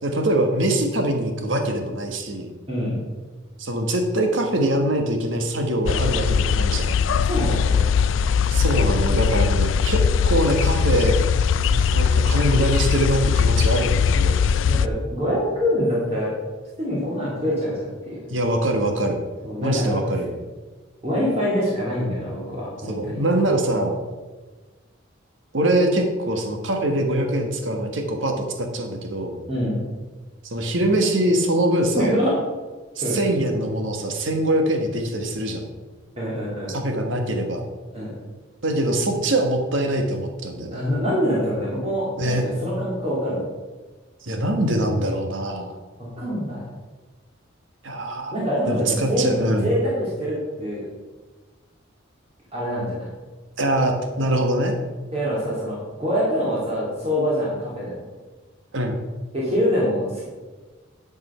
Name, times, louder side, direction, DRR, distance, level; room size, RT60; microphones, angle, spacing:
voice 1, 0.0-2.5 3.6-7.0 8.5-11.2 11.7-14.4 18.3-19.2 19.6-20.4 22.9-23.9 25.5-29.4 30.4-32.1 33.0-35.7 36.7-37.6 38.6-40.8 42.2-42.4 44.2-45.7 47.8-48.3 48.7-49.7 53.6-54.7 58.7-59.0, right 1 dB, 75° right, 4 dB, 1.3 m, -23 dB
sound 1, 5.9-14.9, left 6 dB, 75° left, 0.4 m, -20 dB
voice 2, 7.3-8.0 14.6-16.3 16.8-18.2 19.4-20.0 21.0-23.2 29.5-29.8 31.9-32.3 33.0-33.2 36.2-36.7 37.9-38.1 40.7-43.4 46.0-46.6 48.3-50.9 52.5-53.1 55.1-57.9 59.3-60.2, equal, 30° right, -7 dB, 2.5 m, -25 dB
11.0 x 5.4 x 5.5 m, 1.3 s
head